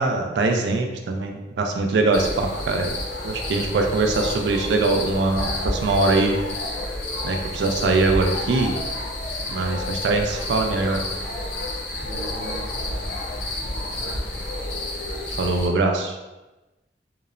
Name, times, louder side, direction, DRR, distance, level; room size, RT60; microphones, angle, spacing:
voice 1, 0.0-3.0 3.2-6.4 7.2-8.7 9.5-11.0 15.3-16.1, right 3 dB, 70° right, 3 dB, 0.3 m, -22 dB
sound 1, 2.1-15.7, left 1 dB, 85° left, 0.6 m, -30 dB
voice 2, 3.5-3.9 12.0-14.5, equal, 30° left, -6 dB, 0.5 m, -39 dB
2.8 x 2.0 x 2.4 m, 1.1 s
head